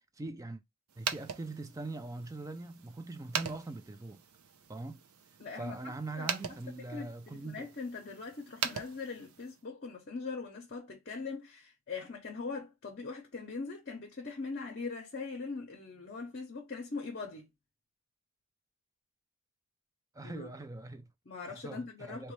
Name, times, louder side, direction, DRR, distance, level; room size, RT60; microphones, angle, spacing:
voice 1, 0.1-0.6 1.0-4.2 4.7-5.0 5.6-7.7 20.1-21.1 21.5-22.3, right 2 dB, 15° right, 0.3 m, -42 dB
sound 1, 0.9-9.6, right 7 dB, 90° right, 0.6 m, -42 dB
voice 2, 5.4-6.4 6.9-17.5 20.2-20.5 21.3-22.3, left 4 dB, 45° left, 0.7 m, -41 dB
4.1 x 2.2 x 3.1 m
head